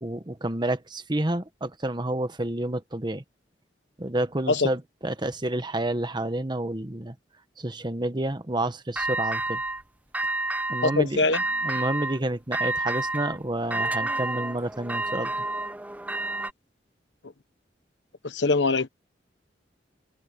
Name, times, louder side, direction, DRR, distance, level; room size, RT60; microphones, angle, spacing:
voice 1, 0.0-3.2 4.0-7.1 7.6-9.6 10.7-11.3 11.6-15.3, right 1 dB, 25° right, 1.3 m, -29 dB
sound 1, 9.0-9.8 10.1-11.0 11.3-12.2 12.5-16.5, right 2 dB, 10° right, 0.6 m, -29 dB
voice 2, 10.8-11.4 18.2-18.9, left 3 dB, 90° left, 1.3 m, -23 dB
head